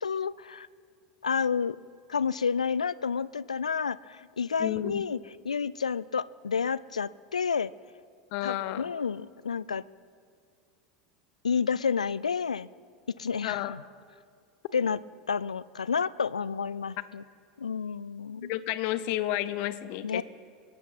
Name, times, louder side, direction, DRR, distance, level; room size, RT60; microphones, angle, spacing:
voice 1, 0.0-0.7 1.2-1.8 2.1-5.2 5.4-7.7 8.4-9.8 11.4-12.7 13.2-13.8 14.7-15.0 15.3-17.2 17.6-18.5 20.0-20.2, left 6 dB, 85° left, 20 dB, 0.4 m, -30 dB
voice 2, 4.6-5.1 8.3-8.9 13.4-13.7 17.0-17.1 18.5-20.2, left 14 dB, 55° left, 15 dB, 0.8 m, -31 dB
28.0 x 12.0 x 4.2 m, 2.2 s
hypercardioid pair, 85°, 4 cm